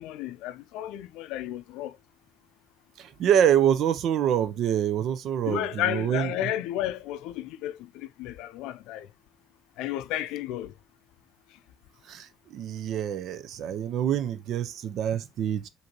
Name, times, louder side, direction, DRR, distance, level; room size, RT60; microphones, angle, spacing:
voice 1, 0.0-2.0 5.5-9.1 9.8-10.7, left 12 dB, 85° left, 0.4 m, -32 dB
voice 2, 3.0-6.5 12.1-15.7, right 9 dB, 65° right, 0.6 m, -26 dB
5.1 x 2.7 x 2.9 m
cardioid pair, 90°, 0 cm